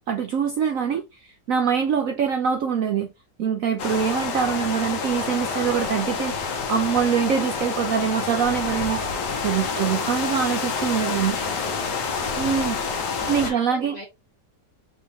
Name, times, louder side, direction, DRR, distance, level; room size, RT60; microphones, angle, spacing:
voice 1, 0.1-3.1 3.4-9.0 9.4-11.4 12.4-13.9, right 7 dB, 65° right, 0.9 m, -24 dB
sound 1, 3.8-13.5, left 5 dB, 70° left, 1.5 m, -28 dB
voice 2, 11.1-12.0 13.2-14.1, left 1 dB, 25° left, 1.3 m, -41 dB
5.0 x 3.5 x 2.9 m
omnidirectional pair, 1.9 m